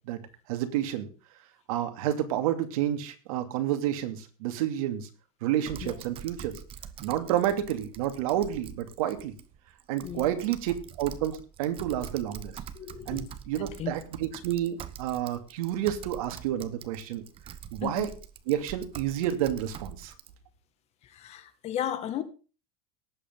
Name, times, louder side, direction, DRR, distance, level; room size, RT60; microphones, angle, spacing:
voice 1, 0.5-1.1 1.7-5.1 5.4-6.6 7.0-9.3 9.9-12.6 13.1-17.2 17.7-18.1 18.5-20.1, right 11 dB, 75° right, 2.7 m, -30 dB
Typing, 5.7-20.3, right 9 dB, 30° right, 1.1 m, -45 dB
voice 2, 12.7-13.3 13.8-13.9 17.8-18.1 21.0-22.2, left 10 dB, 35° left, 1.9 m, -34 dB
18.5 x 8.2 x 3.8 m
supercardioid pair, 150°, 18 cm